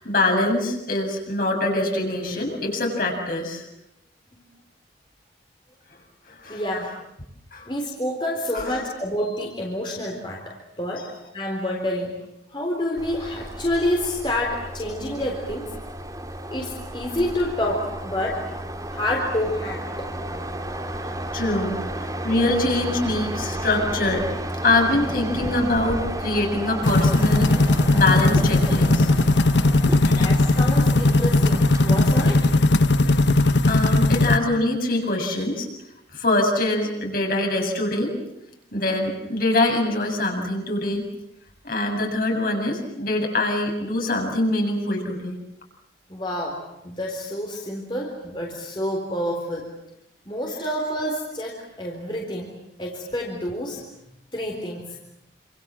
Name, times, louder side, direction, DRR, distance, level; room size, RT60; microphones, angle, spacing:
voice 1, 0.0-3.6 6.3-6.6 7.5-7.7 8.5-8.7 21.0-24.3 24.6-27.5 27.9-29.1 30.0-30.3 33.7-35.7 36.1-38.1 38.7-41.0 41.6-45.4, left 2 dB, 50° left, 1 dB, 7.5 m, -24 dB
voice 2, 6.5-6.9 7.7-12.2 12.5-15.7 16.5-18.5 18.9-20.1 30.1-32.5 46.1-49.7 50.3-53.8 54.3-55.0, left 1 dB, 25° left, -1 dB, 3.9 m, -28 dB
sound 1, 13.0-32.4, right 1 dB, 20° right, 3.0 m, -33 dB
sound 2, 26.8-34.4, left 2 dB, 75° left, 1.3 m, -18 dB
29.0 x 27.0 x 7.7 m, 0.83 s
head